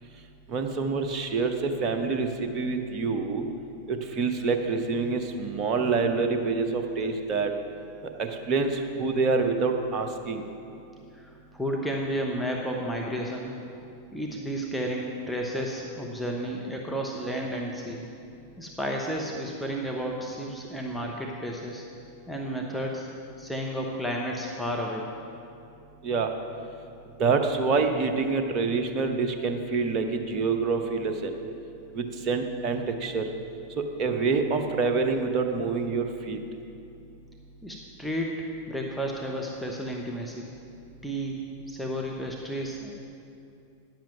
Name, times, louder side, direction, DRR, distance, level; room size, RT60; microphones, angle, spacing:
voice 1, 0.5-2.3 2.5-3.4 3.9-7.5 8.2-10.4 26.0-26.3 27.2-31.3 31.9-33.3 33.8-36.4, right 4 dB, 35° right, 5 dB, 0.9 m, -26 dB
voice 2, 11.1-13.5 14.1-18.0 18.6-21.8 22.3-23.1 23.4-25.1 37.6-38.4 38.7-40.5 41.0-41.4 41.7-42.9, equal, ahead, -2 dB, 0.9 m, -32 dB
10.5 x 7.5 x 5.9 m, 2.6 s
figure-of-eight pair, 90°, 0 cm